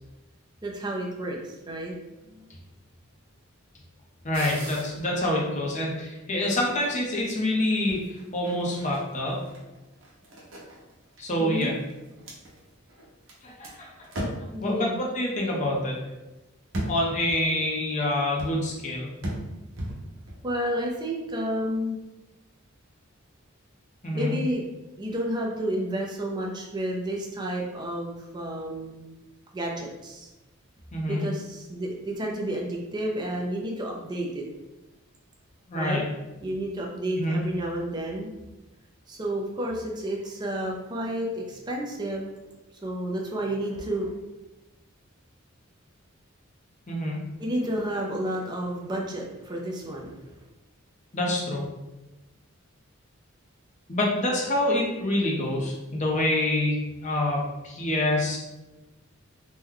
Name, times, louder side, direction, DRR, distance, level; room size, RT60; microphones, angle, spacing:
voice 1, 0.6-2.0 2.2-2.5 11.4-11.7 14.5-15.0 20.4-22.0 24.1-24.6 25.0-29.1 29.5-30.3 31.1-34.4 35.7-36.0 36.4-38.3 39.1-42.3 42.8-44.1 47.4-50.4, right 1 dB, 20° right, -1 dB, 0.4 m, -31 dB
voice 2, 4.2-8.0 8.3-9.4 11.2-11.7 13.4-13.9 14.2-14.3 14.6-16.0 16.9-19.1 24.0-24.3 30.9-31.2 35.7-36.0 37.2-37.4 46.9-47.2 51.1-51.6 53.9-58.4, left 1 dB, 35° left, -2 dB, 0.7 m, -26 dB
sound 1, 4.3-6.1 6.4-7.1 7.9-13.3 13.6-13.7 14.0-14.6 16.7-17.4 18.4-18.7 19.2-20.4, right 1 dB, 65° right, 0.8 m, -37 dB
3.0 x 2.2 x 3.7 m, 1.0 s
head